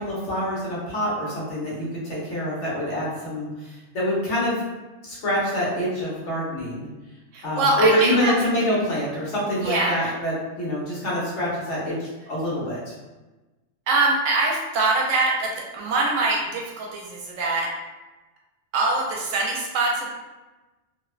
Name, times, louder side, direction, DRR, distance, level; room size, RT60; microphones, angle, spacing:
voice 1, 0.0-3.5 3.9-4.6 5.0-6.9 7.4-12.8, equal, 70° left, -6 dB, 1.2 m, -25 dB
voice 2, 7.3-8.3 9.6-9.9 13.9-17.7 18.7-20.1, right 3 dB, 85° right, -1 dB, 1.0 m, -23 dB
2.8 x 2.1 x 2.3 m, 1.1 s
omnidirectional pair, 1.3 m